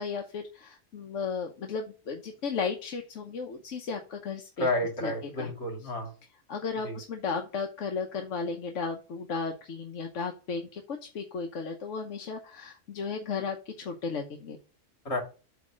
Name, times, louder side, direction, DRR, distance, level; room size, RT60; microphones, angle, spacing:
voice 1, 0.0-4.7 5.0-5.1 5.4-5.5 6.5-14.6, left 5 dB, 90° left, 3 dB, 1.3 m, -34 dB
voice 2, 4.6-6.1 6.8-7.0 15.0-15.2, left 1 dB, 65° left, 1 dB, 2.9 m, -30 dB
8.2 x 3.2 x 6.1 m, 0.34 s
omnidirectional pair, 1.2 m